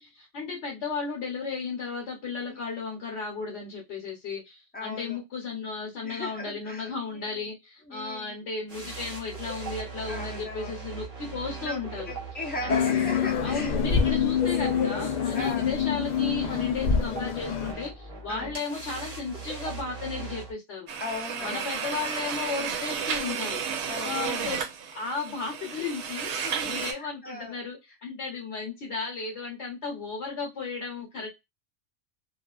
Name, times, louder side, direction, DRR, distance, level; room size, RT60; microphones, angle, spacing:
voice 1, 0.0-12.0 12.6-12.7 13.4-20.9 21.4-24.6 24.9-31.3, left 4 dB, 60° left, 1.0 m, -34 dB
voice 2, 4.7-5.2 6.0-7.4 7.9-8.4 10.1-10.8 11.6-11.8 12.1-13.7 15.3-15.7 18.3-18.6 21.0-21.7 23.9-24.2 26.4-27.6, left 2 dB, 10° left, 0.4 m, -38 dB
sound 1, 8.7-20.5, right 4 dB, 35° right, 0.8 m, -40 dB
sound 2, 12.7-17.7, left 7 dB, 90° left, 0.3 m, -26 dB
sound 3, 20.9-26.9, right 6 dB, 65° right, 0.8 m, -32 dB
2.4 x 2.3 x 2.3 m
omnidirectional pair, 1.3 m